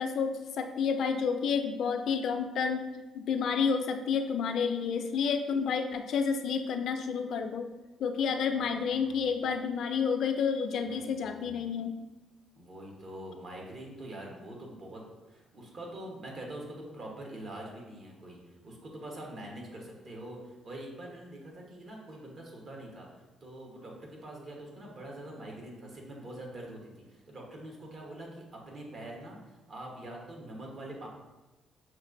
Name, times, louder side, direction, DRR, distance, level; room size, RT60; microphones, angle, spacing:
voice 1, 0.0-2.9 3.1-7.7 8.0-11.9, left 6 dB, 70° left, 6 dB, 0.4 m, -30 dB
voice 2, 8.5-9.3 10.8-11.9 12.6-23.1 23.4-31.1, right 1 dB, 50° right, -1 dB, 1.0 m, -44 dB
6.0 x 2.5 x 2.5 m, 1.1 s
cardioid pair, 90°, 0 cm